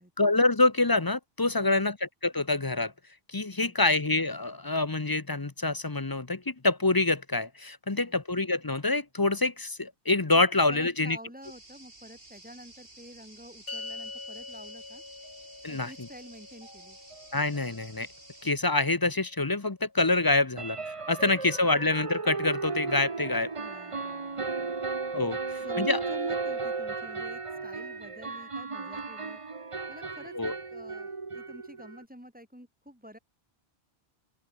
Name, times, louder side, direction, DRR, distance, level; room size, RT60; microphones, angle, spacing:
voice 1, 0.2-2.9 3.3-11.2 15.6-15.9 17.3-18.1 18.4-23.5 25.1-25.4 25.8-26.0 30.3-30.5, left 2 dB, 25° left, 0.8 m, -26 dB
voice 2, 1.5-1.9 3.6-4.0 7.9-8.2 10.7-15.0 15.7-17.0 23.6-24.8 25.3-29.4 29.9-33.2, equal, 10° right, 5.3 m, -49 dB
sound 1, 11.4-18.5, right 2 dB, 65° right, 5.3 m, -52 dB
sound 2, 13.7-20.2, left 3 dB, 65° left, 2.7 m, -46 dB
sound 3, 16.6-16.7 17.1-17.3 17.6-17.7 20.6-32.0, right 4 dB, 30° right, 1.1 m, -35 dB
open air
omnidirectional pair, 1.0 m